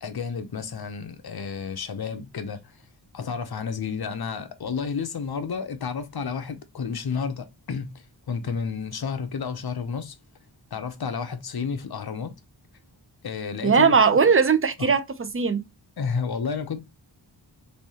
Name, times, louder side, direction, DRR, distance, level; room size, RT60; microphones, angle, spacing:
voice 1, 0.0-2.6 3.1-10.1 10.7-12.3 13.2-13.9 16.0-16.9, left 6 dB, 60° left, 0.8 m, -31 dB
voice 2, 13.6-15.6, right 5 dB, 30° right, 0.6 m, -19 dB
3.4 x 2.7 x 4.2 m
wide cardioid pair, 75°, 44 cm